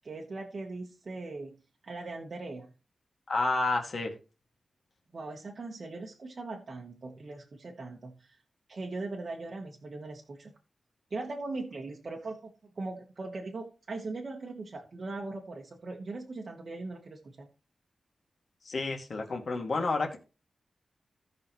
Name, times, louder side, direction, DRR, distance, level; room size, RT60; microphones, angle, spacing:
voice 1, 0.0-2.7 5.1-8.4 8.7-10.5 11.1-12.5 12.8-17.5, right 3 dB, 40° right, -1 dB, 1.1 m, -40 dB
voice 2, 3.3-4.1 18.7-20.2, left 3 dB, 45° left, 2 dB, 1.9 m, -30 dB
16.5 x 5.6 x 3.0 m, 0.33 s
wide cardioid pair, 180°, 0 cm